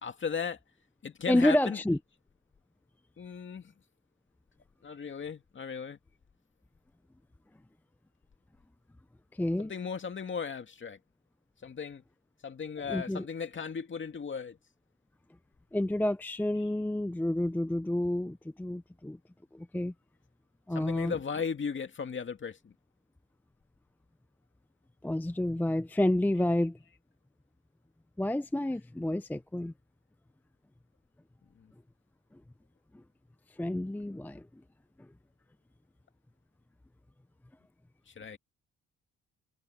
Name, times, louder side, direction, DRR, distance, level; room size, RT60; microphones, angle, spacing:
voice 1, 0.0-0.6 1.0-1.8 3.2-3.7 4.8-6.0 9.6-11.0 11.6-12.0 12.4-14.6 16.5-16.7 20.7-22.7 31.5-31.7 38.1-38.4, left 6 dB, 40° left, 2.3 m, -36 dB
voice 2, 1.3-2.0 9.3-9.7 12.9-13.2 15.7-19.2 19.5-19.9 20.7-21.1 25.0-26.8 28.2-29.7 33.6-34.5, left 1 dB, 5° left, 0.6 m, -29 dB
cardioid pair, 90°, 30 cm